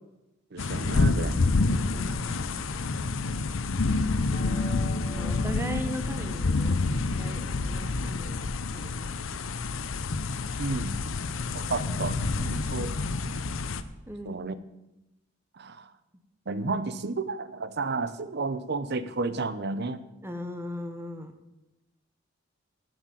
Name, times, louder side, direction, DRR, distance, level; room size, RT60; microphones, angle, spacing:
voice 1, 0.5-1.4 10.6-11.0 11.5-12.2 12.4-12.9 14.3-14.6 15.5-15.9 16.5-20.0, right 3 dB, 55° right, 14 dB, 0.8 m, -32 dB
sound 1, 0.6-13.8, left 3 dB, 80° left, 0.7 m, -28 dB
voice 2, 1.6-2.5 3.7-4.4 5.1-9.2 14.1-14.4 20.2-21.3, equal, 10° right, 6 dB, 0.9 m, -39 dB
sound 2, 1.9-7.6, left 2 dB, 45° left, 4.2 m, -44 dB
11.0 x 7.9 x 7.4 m, 0.95 s
head